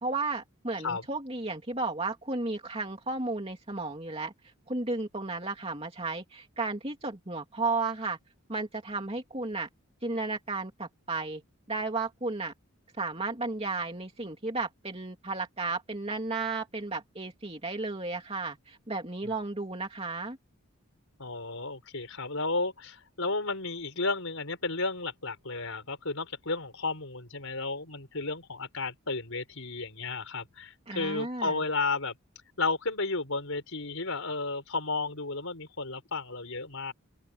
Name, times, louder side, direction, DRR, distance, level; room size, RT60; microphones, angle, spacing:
voice 1, 0.0-4.3 4.7-8.2 8.5-9.7 10.0-11.4 11.7-12.5 13.0-20.4 30.9-31.5, right 3 dB, 25° right, 2.8 m, -33 dB
voice 2, 21.2-32.1 32.6-36.9, left 3 dB, 70° left, 4.8 m, -33 dB
open air
head